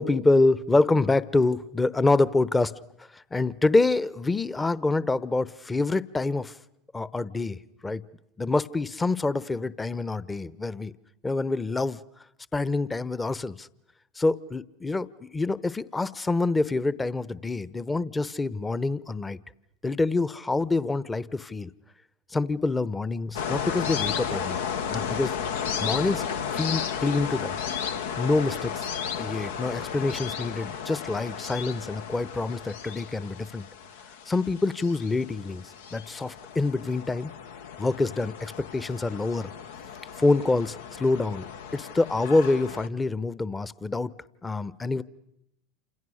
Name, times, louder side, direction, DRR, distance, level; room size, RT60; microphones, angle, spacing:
voice 1, 0.0-2.8 3.1-6.5 6.9-8.0 8.4-10.9 11.2-12.0 12.5-13.7 14.2-19.4 19.8-21.7 22.3-24.6 24.9-25.3 25.8-26.2 26.5-27.5 28.2-28.8 29.2-33.7 34.3-37.3 37.8-39.5 40.2-41.5 41.7-44.1 44.4-45.0, left 3 dB, 15° left, 18 dB, 1.0 m, -26 dB
sound 1, 23.3-42.9, left 7 dB, 75° left, 1.1 m, -34 dB
29.0 x 27.0 x 6.5 m, 0.81 s
hypercardioid pair, 90°, 0 cm